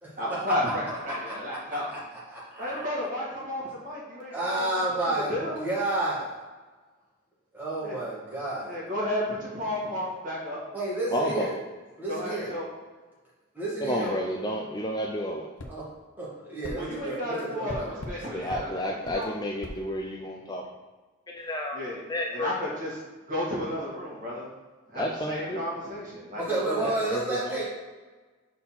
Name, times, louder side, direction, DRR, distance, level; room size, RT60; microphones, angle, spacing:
voice 1, 0.2-1.9 2.6-4.6 5.3-5.6 7.8-7.9 8.6-10.6 12.1-12.6 14.0-14.1 16.7-18.8 19.1-19.3 21.7-22.0 22.3-22.9 23.3-24.5 24.9-26.9, left 1 dB, 40° right, -6 dB, 1.9 m, -32 dB
voice 2, 2.3-2.9 4.3-5.3 5.6-6.3 7.5-8.7 10.7-11.5 12.0-12.5 13.6-14.1 15.7-15.8 16.2-18.0 26.4-27.6, right 2 dB, 10° right, -8 dB, 1.6 m, -30 dB
voice 3, 11.1-11.5 13.8-15.5 18.3-20.6 21.3-21.8 22.1-22.5 24.9-25.6 26.8-27.6, equal, 20° left, 0 dB, 0.4 m, -31 dB
sound 1, 15.6-15.8 16.6-16.8 17.7-18.2 18.5-18.7 19.1-19.2 19.6-19.8, left 1 dB, 75° left, 0.7 m, -38 dB
4.2 x 4.2 x 5.6 m, 1.3 s
head